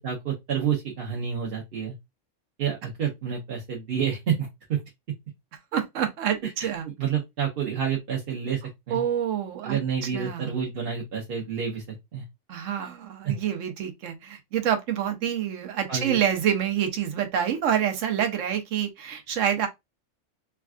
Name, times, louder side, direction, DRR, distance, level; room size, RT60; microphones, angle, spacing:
voice 1, 0.0-1.9 2.6-4.8 6.4-8.6 8.9-9.0 9.6-11.8 12.1-12.2 13.2-13.4 15.9-16.2, right 7 dB, 55° right, 0.9 m, -29 dB
voice 2, 5.7-6.8 8.9-9.8 10.1-10.5 12.5-19.7, right 9 dB, 85° right, 1.1 m, -27 dB
3.4 x 2.3 x 2.4 m
omnidirectional pair, 1.3 m